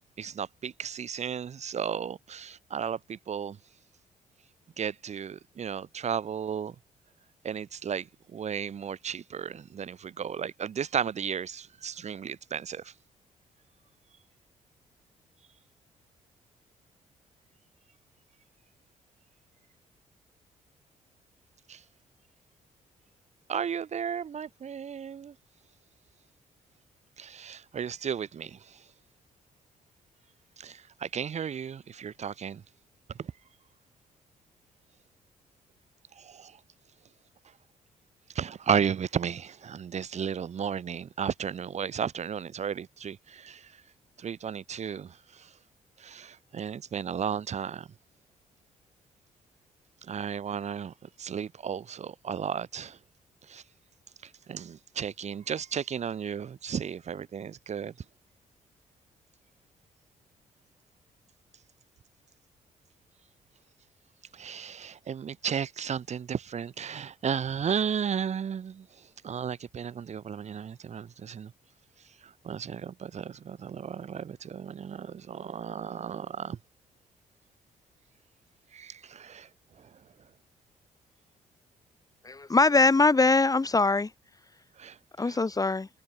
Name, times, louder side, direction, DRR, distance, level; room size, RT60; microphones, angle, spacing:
voice 1, 0.2-3.6 4.8-6.8 7.4-12.9 21.7-21.8 23.5-25.3 27.2-28.8 30.6-32.6 33.2-33.3 36.2-36.6 38.4-43.7 44.2-45.5 46.0-47.9 50.0-53.0 53.5-53.6 54.2-57.9 64.3-68.9 69.2-71.5 72.2-76.6 78.7-79.5 84.8-85.4, right 7 dB, 55° right, 7.0 m, -34 dB
voice 2, 82.2-84.1 85.2-85.9, left 3 dB, 25° left, 2.0 m, -22 dB
hypercardioid pair, 50°, 14 cm